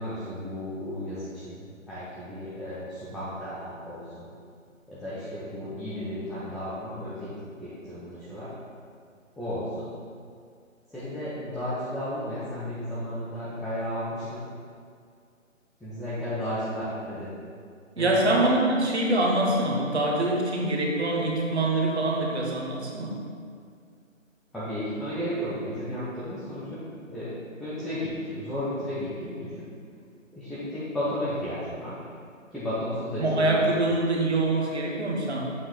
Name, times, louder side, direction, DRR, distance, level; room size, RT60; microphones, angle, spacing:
voice 1, 0.0-4.3 4.9-7.3 7.6-8.5 9.4-9.9 10.9-14.4 15.8-17.3 18.0-18.3 24.5-26.8 27.1-29.7 30.3-31.9 32.5-33.6, left 1 dB, ahead, -13 dB, 0.4 m, -33 dB
voice 2, 18.0-23.1 33.2-35.5, right 2 dB, 55° right, -2 dB, 1.2 m, -24 dB
7.0 x 2.7 x 5.1 m, 2.2 s
figure-of-eight pair, 165°, 40 cm